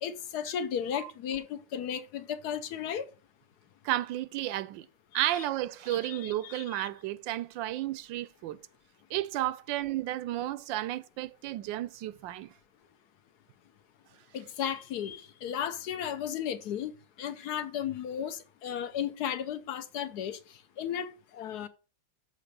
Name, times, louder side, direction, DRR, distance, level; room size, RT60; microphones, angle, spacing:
voice 1, 0.0-3.1 5.3-5.4 5.9-6.9 14.3-16.9 17.2-20.4 20.8-21.7, left 9 dB, 70° left, 1.1 m, -35 dB
voice 2, 3.8-4.9 5.1-8.6 9.1-12.5, right 14 dB, 85° right, 1.3 m, -32 dB
6.7 x 4.8 x 6.6 m
omnidirectional pair, 2.0 m